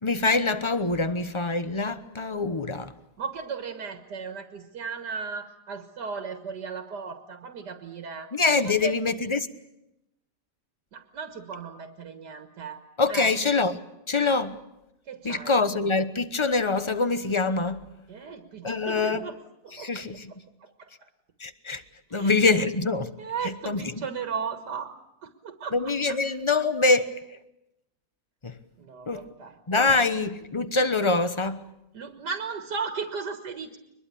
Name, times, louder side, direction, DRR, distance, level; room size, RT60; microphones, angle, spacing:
voice 1, 0.0-2.9 8.3-9.5 13.0-13.8 14.1-14.6 15.2-17.8 18.6-19.2 19.8-20.3 21.4-21.8 22.1-23.1 23.4-23.9 25.7-27.2 28.4-28.6 29.1-29.2 29.7-31.6, left 3 dB, 20° left, 0.8 m, -24 dB
voice 2, 3.2-8.3 8.6-9.0 10.9-13.3 15.1-15.6 18.1-19.4 19.6-20.0 20.6-21.1 22.1-22.4 23.2-24.9 25.2-26.2 28.8-29.6 31.9-33.8, right 5 dB, 75° right, 2.1 m, -36 dB
23.0 x 21.5 x 8.5 m
omnidirectional pair, 1.8 m